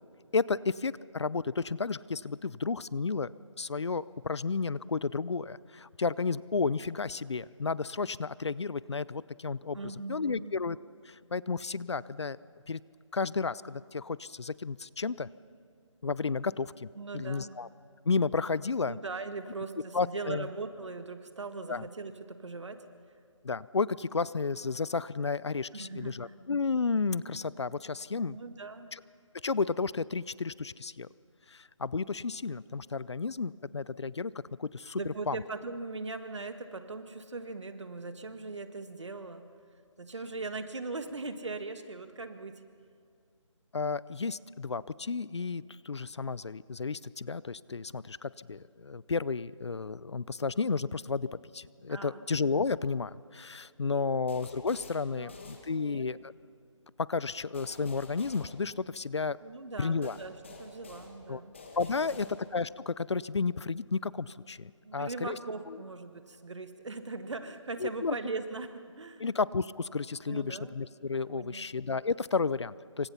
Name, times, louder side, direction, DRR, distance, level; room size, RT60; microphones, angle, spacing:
voice 1, 0.3-3.3 3.6-9.8 10.1-10.8 11.1-12.4 12.7-12.8 13.1-15.3 16.0-17.7 18.0-19.0 19.9-20.5 21.7-21.8 23.4-28.4 28.9-29.0 29.4-31.1 31.5-35.4 43.7-56.3 57.0-59.4 59.8-60.2 61.3-61.4 61.8-65.4 65.7-65.8 67.8-68.1 69.2-73.1, left 4 dB, 60° left, 20 dB, 0.6 m, -32 dB
voice 2, 9.7-10.5 17.0-17.5 18.9-22.9 25.7-26.3 28.3-29.0 34.9-39.5 40.0-42.7 51.9-52.2 54.0-54.2 55.1-55.4 55.7-56.1 59.4-61.6 61.9-62.2 64.8-69.2 70.3-70.8 71.3-71.7, right 3 dB, 65° right, 8 dB, 1.8 m, -40 dB
sound 1, 54.3-56.2 57.5-59.3 60.0-62.8, left 3 dB, 25° left, 1.6 m, -50 dB
27.5 x 25.0 x 5.7 m, 2.3 s
hypercardioid pair, 180°, 16 cm